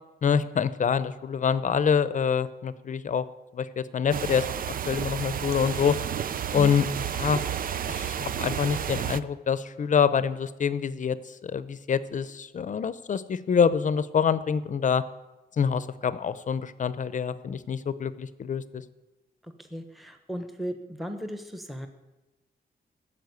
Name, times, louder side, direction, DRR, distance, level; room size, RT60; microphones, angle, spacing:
voice 1, 0.2-3.2 3.5-4.5 4.9-6.0 6.5-6.9 7.2-7.4 7.9-11.2 11.4-15.0 15.6-18.8, left 7 dB, 50° left, 15 dB, 0.7 m, -26 dB
sound 1, 4.1-9.2, right 9 dB, 55° right, 0.5 m, -31 dB
voice 2, 19.7-21.9, equal, ahead, 6 dB, 1.1 m, -36 dB
15.5 x 7.4 x 9.6 m, 1.1 s
wide cardioid pair, 160°, 17 cm